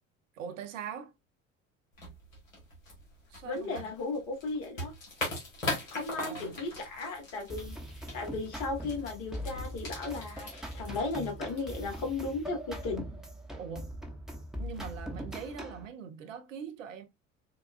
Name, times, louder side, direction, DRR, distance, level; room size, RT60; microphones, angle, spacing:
voice 1, 0.3-1.1 3.3-4.0 6.2-6.6 13.6-13.9 14.6-17.0, right 7 dB, 80° right, 0.7 m, -42 dB
sound 1, 1.9-12.2, left 2 dB, 85° left, 1.5 m, -41 dB
voice 2, 3.4-4.9 5.9-7.8 8.1-13.1, left 3 dB, 65° left, 1.5 m, -35 dB
sound 2, 7.5-15.9, equal, ahead, 0.8 m, -41 dB
4.3 x 2.3 x 2.5 m
hypercardioid pair, 65°, 38 cm